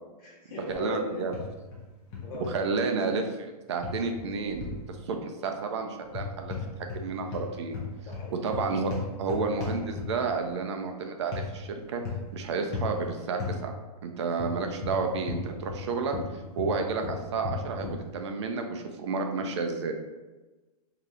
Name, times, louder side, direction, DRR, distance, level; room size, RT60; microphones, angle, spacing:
voice 1, 0.2-1.3 2.2-2.8 8.1-8.6, left 2 dB, 35° left, -5 dB, 0.9 m, -38 dB
voice 2, 0.8-1.4 2.5-6.5 6.8-7.8 8.4-12.0 12.3-13.7 14.0-19.9, right 4 dB, 45° right, 4 dB, 0.5 m, -31 dB
sound 1, 1.3-1.8 2.1-2.6 3.8-4.8 6.1-7.0 7.3-10.3 11.3-11.5 12.0-12.3 12.7-12.9 13.4-13.6 14.4-15.8 16.1-18.0, left 5 dB, 15° left, 0.5 m, -35 dB
3.4 x 2.8 x 3.6 m, 1.2 s
hypercardioid pair, 170°, 20 cm